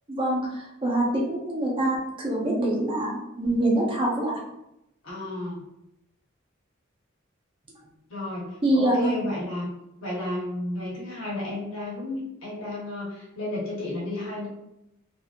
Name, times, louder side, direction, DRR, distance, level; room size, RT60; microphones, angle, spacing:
voice 1, 0.1-4.3 8.6-9.2, right 1 dB, 25° right, -3 dB, 0.7 m, -25 dB
voice 2, 5.0-5.6 8.1-9.7 10.0-14.5, left 1 dB, 75° left, -6 dB, 1.1 m, -32 dB
2.9 x 2.7 x 2.4 m, 0.86 s
head